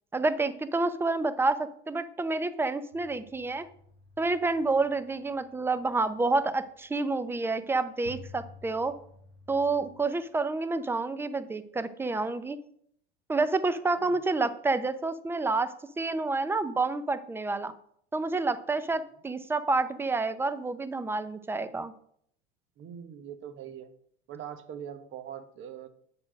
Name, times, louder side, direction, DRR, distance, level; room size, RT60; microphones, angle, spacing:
voice 1, 0.1-3.7 4.2-8.9 9.5-12.6 13.3-17.7 18.1-21.9, right 3 dB, 10° right, 13 dB, 0.5 m, -29 dB
sound 1, 2.9-6.8 7.5-7.6 8.0-9.9, left 1 dB, 80° right, 1.8 m, -52 dB
voice 2, 22.8-23.9 24.3-25.9, right 9 dB, 45° right, 9 dB, 1.2 m, -42 dB
8.8 x 4.3 x 6.3 m, 0.67 s
supercardioid pair, 110°, 29 cm